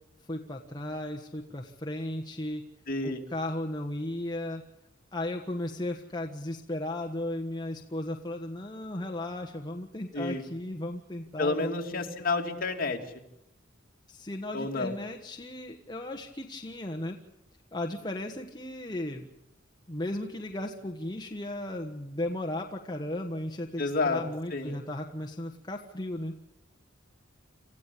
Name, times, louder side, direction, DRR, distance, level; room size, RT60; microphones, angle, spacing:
voice 1, 0.3-2.6 3.0-4.6 5.1-12.0 14.1-17.2 17.7-19.3 19.9-26.3, left 1 dB, 20° left, 1 dB, 1.4 m, -35 dB
voice 2, 2.9-3.2 10.1-10.4 11.4-13.0 14.5-14.9 23.8-24.2 24.5-24.8, left 3 dB, 45° left, 2 dB, 2.7 m, -29 dB
28.0 x 15.0 x 8.4 m, 0.84 s
head